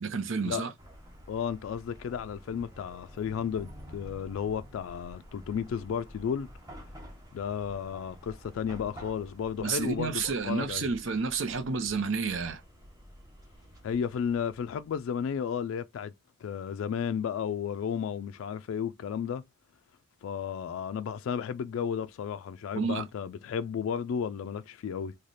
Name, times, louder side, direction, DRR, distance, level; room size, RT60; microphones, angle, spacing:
voice 1, 0.0-0.7 9.6-12.6 22.7-23.0, right 5 dB, 80° right, 0.7 m, -30 dB
Chatter / Car passing by / Traffic noise roadway noise, 0.8-15.1, equal, 15° right, 1.1 m, -50 dB
voice 2, 1.3-6.5 7.3-10.9 13.8-16.1 16.4-19.4 20.2-25.2, left 7 dB, 90° left, 0.3 m, -33 dB
3.2 x 2.1 x 3.9 m
head